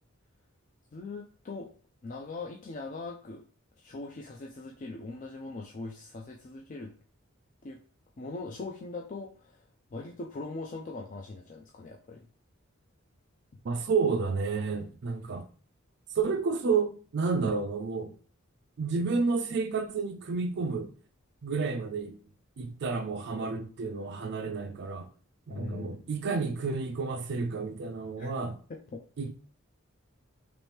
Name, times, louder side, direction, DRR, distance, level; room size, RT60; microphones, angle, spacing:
voice 1, 0.9-1.7 2.0-3.4 3.8-6.9 7.6-7.8 8.2-9.6 9.9-12.3 25.5-26.0 28.2-28.3 28.7-29.0, left 3 dB, 40° left, 0.4 m, -41 dB
voice 2, 13.6-15.5 16.1-18.1 18.8-20.9 21.4-22.2 22.6-25.1 25.5-28.6 29.2-29.3, right 4 dB, 55° right, 0.4 m, -30 dB
3.0 x 2.9 x 3.3 m
head